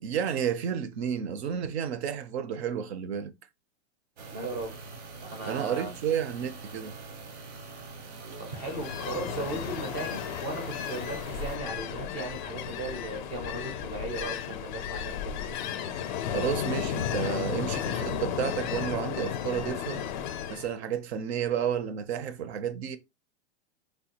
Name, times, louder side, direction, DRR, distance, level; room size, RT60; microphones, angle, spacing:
voice 1, 0.0-3.3 5.5-6.9 16.3-20.0 20.5-23.0, right 8 dB, 65° right, 0.6 m, -31 dB
sound 1, 4.2-11.6, right 4 dB, 85° right, 1.0 m, -44 dB
voice 2, 4.3-4.9 5.2-5.9 8.4-15.4, right 2 dB, 15° right, 0.4 m, -37 dB
Ocean, 8.5-20.7, left 8 dB, 45° left, 0.4 m, -34 dB
3.3 x 2.2 x 2.8 m
supercardioid pair, 160°, 35 cm